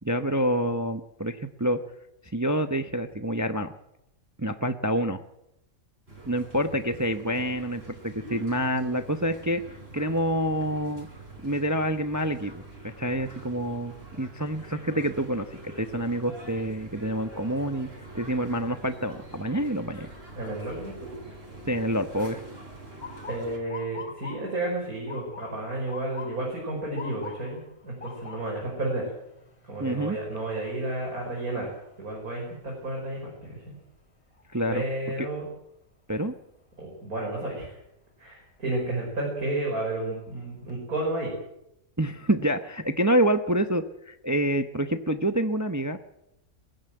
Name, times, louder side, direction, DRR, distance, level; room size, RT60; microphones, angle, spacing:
voice 1, 0.0-1.8 2.3-3.7 4.4-5.2 6.2-9.6 9.9-11.1 11.4-15.5 15.7-17.9 18.1-20.1 21.7-22.4 29.8-30.2 34.5-34.8 35.2-35.3 36.1-36.3 42.0-46.0, right 1 dB, 15° right, 8 dB, 0.7 m, -27 dB
sound 1, 6.1-23.6, right 2 dB, 45° right, 4.5 m, -45 dB
voice 2, 20.4-21.1 23.3-29.1 29.6-31.7 32.0-33.8 34.7-35.5 36.8-37.8 38.2-41.3, right 2 dB, 90° right, -2 dB, 6.0 m, -32 dB
Motor vehicle (road) / Siren, 23.0-34.9 35.3-35.8 36.6-36.9 38.7-39.0 39.5-39.6 40.0-40.7, left 5 dB, 20° left, 2.6 m, -46 dB
19.5 x 14.5 x 9.2 m, 0.84 s
omnidirectional pair, 1.5 m